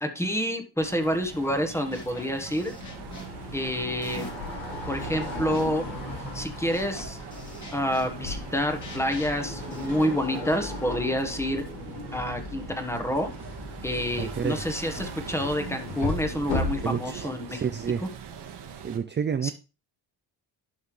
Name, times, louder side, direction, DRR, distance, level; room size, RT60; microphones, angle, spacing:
voice 1, 0.0-2.7 3.5-4.3 4.9-5.8 6.3-7.2 7.7-11.6 12.1-13.3 13.8-17.6 19.4-19.5, equal, 5° left, 5 dB, 1.4 m, -28 dB
sound 1, 0.8-19.0, right 7 dB, 65° right, 1.7 m, -42 dB
sound 2, 1.3-1.6 1.9-4.5 4.9-10.6, left 2 dB, 40° left, 3.1 m, -45 dB
sound 3, 2.8-17.1, left 2 dB, 80° left, 3.7 m, -36 dB
voice 2, 14.2-14.5 16.8-18.1 18.8-19.5, right 7 dB, 25° right, 10 dB, 0.4 m, -29 dB
11.5 x 5.5 x 3.2 m, 0.31 s
cardioid pair, 100°, 44 cm